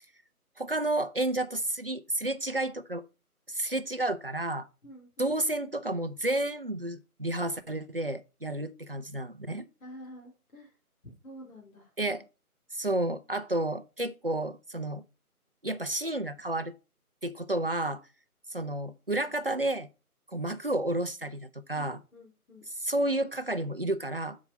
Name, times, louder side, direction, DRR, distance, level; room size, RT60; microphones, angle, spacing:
voice 1, 0.6-3.0 3.5-4.7 5.2-9.7 12.0-12.2 12.7-15.0 15.6-16.7 17.2-18.0 18.5-19.9 20.3-22.0 22.8-24.4, right 1 dB, 40° right, 0.5 m, -31 dB
voice 2, 4.8-5.4 9.8-10.7 11.2-11.9 21.7-22.6, equal, 60° left, 3.8 m, -49 dB
7.1 x 4.8 x 5.3 m
figure-of-eight pair, 160°, 45 cm